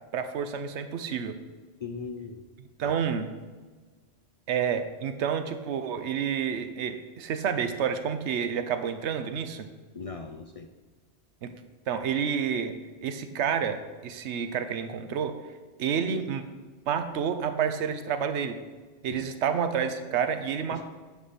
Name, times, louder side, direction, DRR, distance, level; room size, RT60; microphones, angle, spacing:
voice 1, 0.1-1.4 2.8-3.3 4.5-9.7 11.4-11.5 11.9-15.4 15.8-16.4 16.9-18.6 19.0-20.8, right 7 dB, 75° right, 9 dB, 1.0 m, -29 dB
voice 2, 1.8-2.5 2.8-2.9 9.9-10.7 19.1-19.2 20.7-20.8, left 5 dB, 50° left, 5 dB, 0.4 m, -39 dB
9.7 x 7.8 x 4.2 m, 1.3 s
omnidirectional pair, 1.2 m